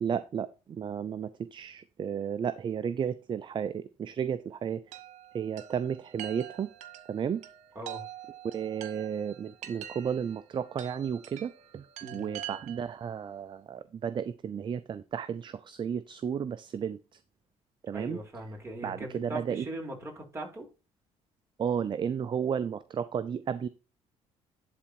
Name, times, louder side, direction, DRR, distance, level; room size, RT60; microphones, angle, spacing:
voice 1, 0.0-4.8 5.3-6.7 7.1-7.4 8.5-11.9 12.1-17.0 17.8-18.2 18.8-19.7 21.6-23.7, right 7 dB, 40° right, 0.6 m, -33 dB
Chime, 4.9-13.0, right 11 dB, 75° right, 1.4 m, -45 dB
voice 2, 17.9-20.7, right 1 dB, 20° right, 4.8 m, -40 dB
11.5 x 4.3 x 4.3 m
cardioid pair, 85°, 12 cm